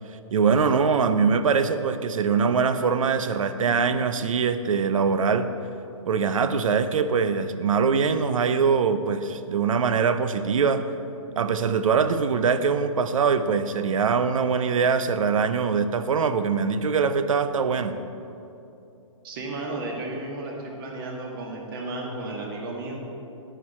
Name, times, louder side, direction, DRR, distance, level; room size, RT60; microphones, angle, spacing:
voice 1, 0.3-5.5 6.1-10.9 11.4-18.0, right 5 dB, 75° right, 11 dB, 0.7 m, -23 dB
voice 2, 19.2-23.0, right 2 dB, 40° right, 0 dB, 1.9 m, -33 dB
10.0 x 9.1 x 4.3 m, 2.7 s
hypercardioid pair, 160°, 17 cm